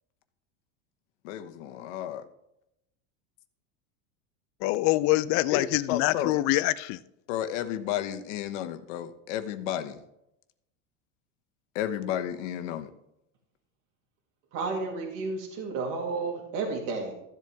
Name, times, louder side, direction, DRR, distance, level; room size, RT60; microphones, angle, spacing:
voice 1, 1.2-2.2 5.5-6.3 7.3-10.0 11.7-12.9, left 11 dB, 70° left, 1.1 m, -32 dB
voice 2, 4.6-7.0, left 18 dB, 50° left, 0.5 m, -25 dB
voice 3, 14.5-17.1, right 4 dB, 70° right, 2.7 m, -32 dB
14.5 x 7.8 x 3.5 m
supercardioid pair, 130°, 37 cm